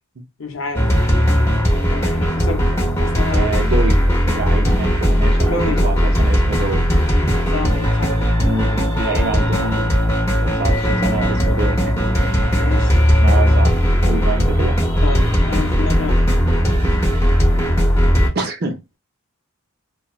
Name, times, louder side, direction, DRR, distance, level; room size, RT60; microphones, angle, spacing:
voice 1, 0.4-0.9 1.9-2.6 3.0-3.5 5.4-5.9 7.3-8.3 12.5-13.0 15.0-16.2, left 4 dB, 55° left, 0.7 m, -28 dB
sound 1, 0.7-18.3, equal, 15° left, 0.8 m, -16 dB
voice 2, 3.3-6.8 8.4-10.0 10.4-12.0 13.2-13.7 14.0-14.8 18.3-18.8, right 2 dB, 45° right, 0.6 m, -26 dB
3.0 x 2.2 x 2.3 m
head